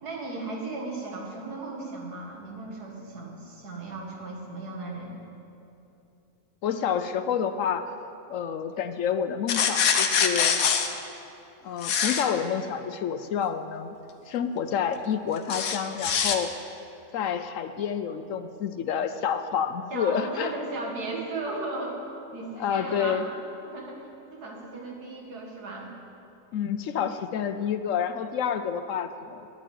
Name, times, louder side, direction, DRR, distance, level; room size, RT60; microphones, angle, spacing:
voice 1, 0.0-5.2 19.9-22.0 22.3-23.3 23.7-25.9, right 3 dB, 90° right, -1 dB, 2.5 m, -36 dB
voice 2, 6.6-7.8 8.3-10.6 11.6-13.9 14.3-16.5 17.1-20.5 22.6-23.3 26.5-29.5, left 8 dB, 65° left, 10 dB, 0.9 m, -29 dB
sound 1, 9.5-10.9 11.8-12.2 15.5-16.4, left 7 dB, 85° left, 1.4 m, -24 dB
10.5 x 9.1 x 9.1 m, 2.7 s
omnidirectional pair, 1.6 m